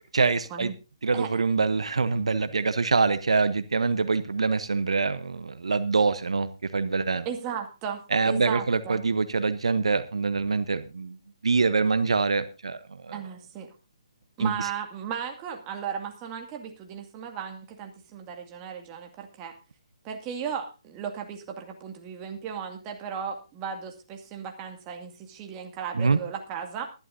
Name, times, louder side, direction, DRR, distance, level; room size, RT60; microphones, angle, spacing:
voice 1, 0.1-0.7 1.0-7.3 8.1-11.2 11.4-13.1 14.4-14.5 26.0-26.2, right 4 dB, 75° right, 13 dB, 0.9 m, -25 dB
voice 2, 7.3-9.0 13.1-13.7 14.4-19.6 20.0-26.9, right 7 dB, 25° right, 4 dB, 2.2 m, -36 dB
20.0 x 11.5 x 2.7 m, 0.30 s
figure-of-eight pair, 145°, 3 cm